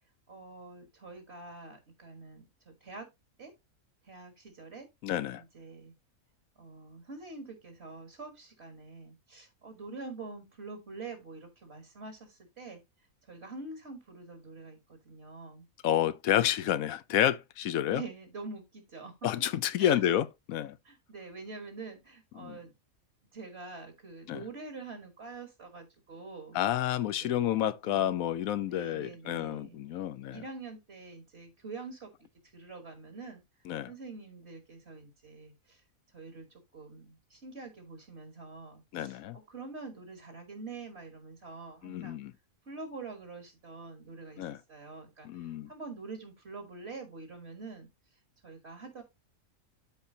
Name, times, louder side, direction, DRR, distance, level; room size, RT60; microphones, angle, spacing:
voice 1, 0.3-3.1 3.4-3.5 4.1-4.9 5.4-5.9 6.6-12.8 13.3-15.7 17.9-19.1 19.8-20.0 20.8-22.7 23.3-26.6 27.0-27.5 27.8-28.2 28.7-29.8 30.3-32.1 32.5-33.4 33.9-35.8 36.1-36.5 36.7-42.2 42.7-47.9 48.4-49.0, right 3 dB, 50° right, 2.0 m, -45 dB
voice 2, 5.0-5.4 15.8-18.0 19.2-20.8 22.4-22.6 24.3-24.4 26.5-30.4 33.7-33.9 38.9-39.4 41.8-42.3 44.4-44.6 45.2-45.7, left 11 dB, 80° left, 1.0 m, -30 dB
13.0 x 4.3 x 2.8 m
omnidirectional pair, 1.5 m